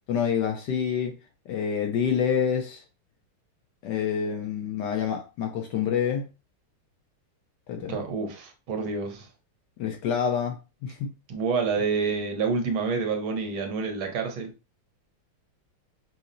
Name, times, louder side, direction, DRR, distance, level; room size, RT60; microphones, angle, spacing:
voice 1, 0.1-1.1 1.5-2.8 3.8-6.2 7.7-7.9 9.8-11.1, left 7 dB, 70° left, 1.1 m, -27 dB
voice 2, 7.9-9.3 11.3-14.5, right 5 dB, 80° right, 1.6 m, -28 dB
5.7 x 2.0 x 2.5 m
omnidirectional pair, 2.2 m